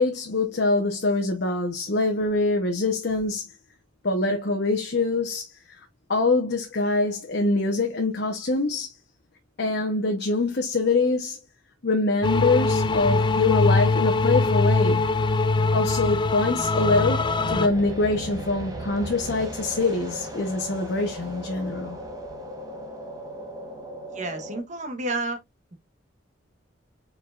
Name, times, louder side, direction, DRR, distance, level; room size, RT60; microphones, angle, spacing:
voice 1, 0.0-3.5 4.0-5.5 6.1-8.9 9.6-11.4 11.8-15.0 15.7-22.0, left 3 dB, 60° left, 0.9 m, -24 dB
sound 1, 12.2-17.7, left 3 dB, 25° left, 0.4 m, -22 dB
sound 2, 16.7-24.6, right 1 dB, 20° right, 1.2 m, -36 dB
voice 2, 24.1-25.4 25.7-25.8, right 2 dB, 40° right, 1.2 m, -30 dB
4.6 x 4.6 x 2.4 m
head